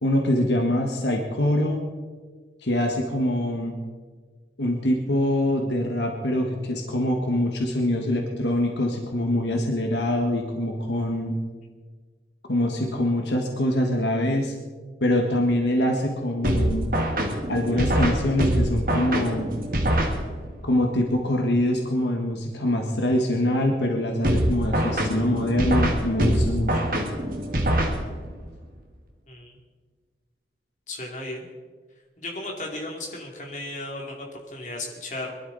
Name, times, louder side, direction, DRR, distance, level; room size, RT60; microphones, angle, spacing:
voice 1, 0.0-1.8 2.6-3.8 4.6-11.3 12.5-14.5 15.0-16.9 17.5-19.5 20.7-26.8, left 1 dB, 80° left, 2 dB, 1.6 m, -24 dB
sound 1, 16.4-20.6 24.2-28.5, right 1 dB, 50° right, 1.8 m, -24 dB
voice 2, 29.3-29.6 30.9-31.5 32.2-35.4, left 2 dB, 45° left, 0 dB, 2.7 m, -35 dB
22.5 x 12.5 x 4.1 m, 1.5 s
head